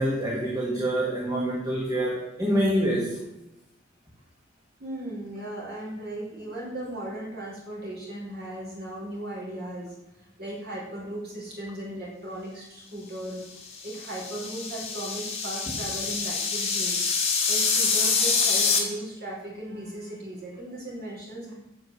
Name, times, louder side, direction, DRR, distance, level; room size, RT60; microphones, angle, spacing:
voice 1, 0.0-3.2 15.7-15.8, right 1 dB, 20° right, -2 dB, 1.5 m, -26 dB
voice 2, 4.8-9.9 10.4-17.1 17.5-21.5, right 1 dB, 55° right, -4 dB, 4.8 m, -37 dB
sound 1, 13.7-18.8, left 5 dB, 35° left, 2.1 m, -26 dB
8.0 x 6.7 x 8.0 m, 0.95 s
head